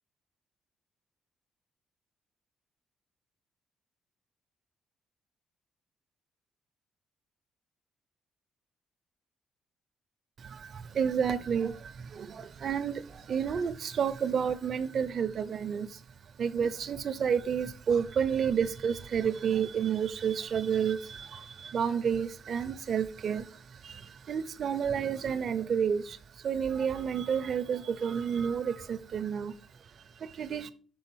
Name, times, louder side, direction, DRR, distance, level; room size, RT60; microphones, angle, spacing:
voice 1, 10.4-30.7, right 7 dB, 55° right, 12 dB, 0.7 m, -31 dB
7.0 x 3.9 x 5.7 m, 0.40 s
cardioid pair, 90°, 0 cm